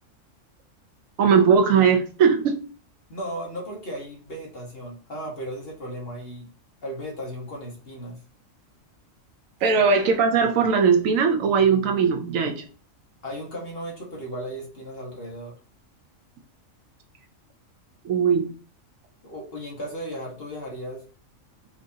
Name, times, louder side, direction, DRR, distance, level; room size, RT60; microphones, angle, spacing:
voice 1, 1.2-2.6 9.6-12.6 18.0-18.5, right 6 dB, 80° right, 1.0 m, -19 dB
voice 2, 3.1-6.5 6.8-8.2 13.2-15.5 19.2-21.0, equal, 50° left, 1.3 m, -35 dB
4.6 x 2.6 x 2.7 m
omnidirectional pair, 1.4 m